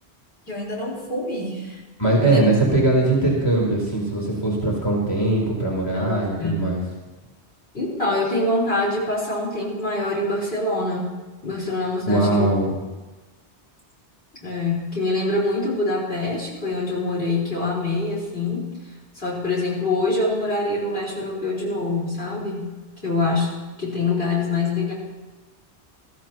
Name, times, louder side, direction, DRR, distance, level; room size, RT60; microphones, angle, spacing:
voice 1, 0.5-1.8 2.2-2.4 5.9-6.8 7.7-11.1 11.4-12.8 14.4-18.7 19.1-22.7 23.0-24.9, left 2 dB, 60° left, -6 dB, 4.9 m, -25 dB
voice 2, 2.0-6.8 12.1-12.8, right 2 dB, 20° left, -4 dB, 4.1 m, -20 dB
22.0 x 14.5 x 3.1 m, 1.2 s
omnidirectional pair, 1.1 m